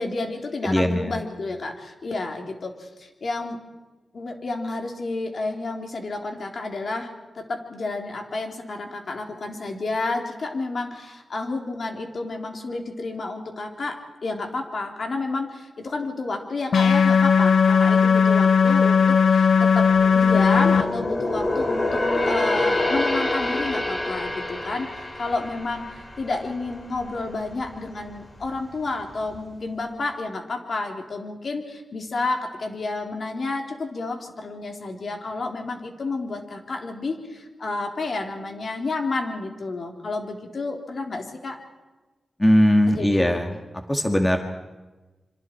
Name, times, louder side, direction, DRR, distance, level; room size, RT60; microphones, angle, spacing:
voice 1, 0.0-3.6 4.1-19.9 20.1-24.9 25.2-41.6 42.9-43.3, left 3 dB, 60° left, 2 dB, 3.5 m, -30 dB
voice 2, 0.6-1.2 42.4-43.5 43.9-44.4, equal, 15° left, 4 dB, 2.1 m, -19 dB
sound 1, 16.7-20.8, left 6 dB, 85° left, 1.5 m, -17 dB
sound 2, 19.6-27.1 27.5-27.7 28.3-29.0 29.3-29.4, left 2 dB, 40° left, 5.4 m, -27 dB
27.0 x 25.5 x 4.6 m, 1.2 s
cardioid pair, 55°, 0 cm